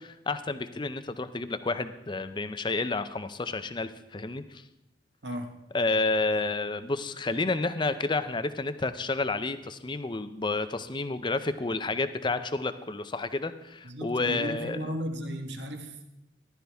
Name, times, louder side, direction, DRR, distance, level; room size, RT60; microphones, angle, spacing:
voice 1, 0.0-4.6 5.7-14.9, left 3 dB, 25° left, 11 dB, 0.5 m, -30 dB
voice 2, 13.8-16.0, equal, 70° right, 5 dB, 1.4 m, -35 dB
15.0 x 11.5 x 3.5 m, 0.92 s
head